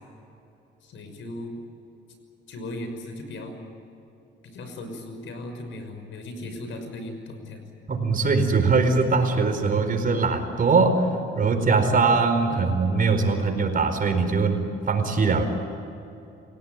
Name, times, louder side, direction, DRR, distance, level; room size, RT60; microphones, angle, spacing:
voice 1, 0.8-1.6 2.5-3.5 4.4-7.7 12.5-12.7, left 1 dB, 75° left, 6 dB, 6.0 m, -37 dB
voice 2, 7.9-11.1 11.3-15.4, right 4 dB, 45° right, 6 dB, 4.5 m, -21 dB
29.0 x 17.0 x 9.4 m, 2.8 s
cardioid pair, 90°, 20 cm